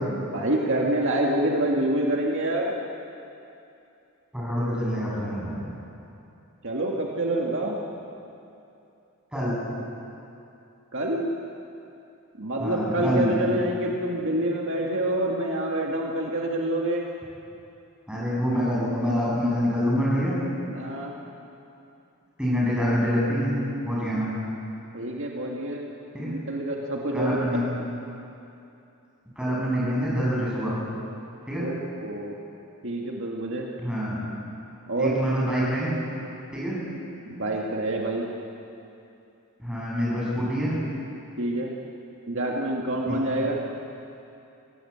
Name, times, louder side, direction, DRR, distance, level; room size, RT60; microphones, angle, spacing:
voice 1, 0.0-2.8 6.6-7.8 10.9-11.3 12.4-17.1 20.7-21.2 24.9-25.9 26.2-27.4 27.8-27.9 31.6-31.7 32.0-32.3 32.8-33.7 34.9-35.2 37.3-38.3 41.4-41.7 42.3-43.6, right 1 dB, 60° right, -1 dB, 2.1 m, -27 dB
voice 2, 4.3-5.7 9.3-9.6 12.6-13.3 18.1-20.4 22.4-23.6 23.9-24.3 26.1-26.3 27.1-27.6 29.4-30.8 31.5-31.7 33.8-34.2 35.0-36.0 36.5-36.8 39.6-40.8 43.1-43.2, equal, 5° right, -6 dB, 8.0 m, -26 dB
24.0 x 17.5 x 8.8 m, 2.7 s
head